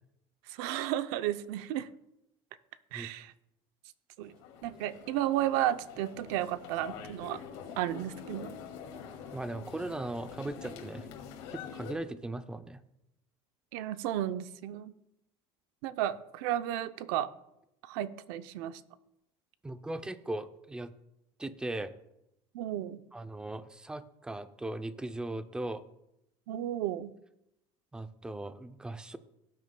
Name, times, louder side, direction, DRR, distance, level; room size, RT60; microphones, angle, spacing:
voice 1, 0.5-1.9 2.9-3.3 4.2-4.3 4.6-7.4 7.8-8.6 13.7-14.9 15.8-17.3 17.8-18.8 22.5-23.0 26.5-27.1, right 12 dB, 85° right, 12 dB, 0.6 m, -33 dB
sound 1, 4.2-11.9, left 7 dB, 90° left, 2.2 m, -46 dB
voice 2, 9.3-11.1 11.5-12.8 19.6-20.9 21.4-21.9 23.1-25.8 27.9-29.2, right 2 dB, 5° right, 10 dB, 0.4 m, -38 dB
17.5 x 9.3 x 2.2 m, 0.85 s
cardioid pair, 160°, 12 cm